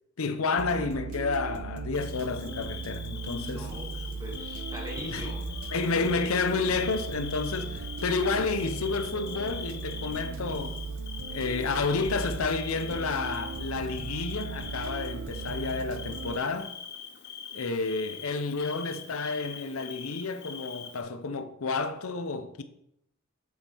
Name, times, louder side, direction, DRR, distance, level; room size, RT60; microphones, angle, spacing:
voice 1, 0.2-3.7 5.1-5.2 5.7-10.8 11.3-16.8 17.5-22.6, left 4 dB, 90° left, 0.7 m, -30 dB
sound 1, 0.6-16.4, right 5 dB, 80° right, 0.7 m, -37 dB
Bird / Cricket, 1.9-21.0, left 7 dB, 55° left, 0.8 m, -43 dB
voice 2, 3.4-5.5, equal, 20° right, 2.0 m, -41 dB
7.8 x 7.2 x 4.5 m
head